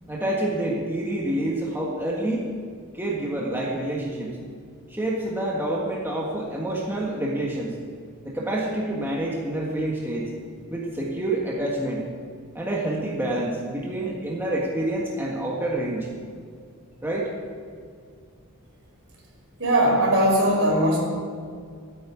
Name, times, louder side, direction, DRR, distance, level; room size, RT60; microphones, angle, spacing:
voice 1, 0.0-2.5 2.9-4.4 4.9-7.8 8.2-10.3 10.7-12.1 12.5-16.1 17.0-17.3, right 1 dB, 10° right, -3 dB, 1.6 m, -27 dB
voice 2, 19.6-21.0, right 1 dB, 60° right, -2 dB, 5.2 m, -19 dB
14.0 x 9.4 x 8.7 m, 2.1 s
head